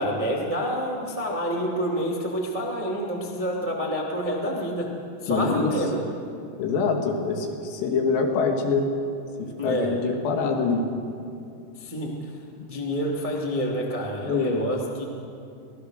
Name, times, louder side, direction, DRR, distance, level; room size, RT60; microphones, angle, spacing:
voice 1, 0.0-4.9 5.2-6.0 9.6-10.0 11.7-12.4 12.7-15.0, equal, 55° right, -3 dB, 0.3 m, -28 dB
voice 2, 5.3-5.7 6.6-8.9 9.4-10.8 14.2-14.6, left 4 dB, 85° left, 3 dB, 4.6 m, -25 dB
26.0 x 18.0 x 6.6 m, 2.5 s
omnidirectional pair, 5.9 m